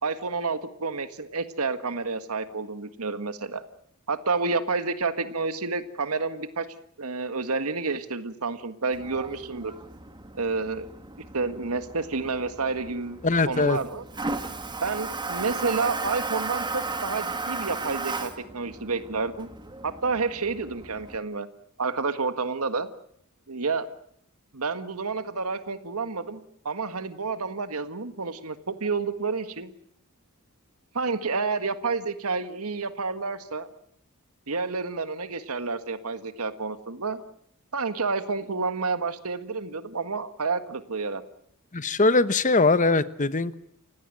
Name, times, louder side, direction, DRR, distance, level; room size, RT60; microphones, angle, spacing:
voice 1, 0.0-3.7 4.1-6.7 7.0-9.7 10.3-10.9 11.3-13.2 13.5-14.0 14.8-19.5 19.8-21.5 21.8-22.9 23.5-23.9 24.5-29.7 30.9-33.7 34.5-37.2 37.7-41.2, right 4 dB, 85° right, 11 dB, 1.7 m, -29 dB
Toilet flush, 8.9-21.2, right 3 dB, 20° right, 1.9 m, -35 dB
voice 2, 13.2-13.8 41.7-43.5, left 3 dB, 35° left, 15 dB, 1.1 m, -21 dB
29.5 x 16.5 x 9.2 m, 0.69 s
head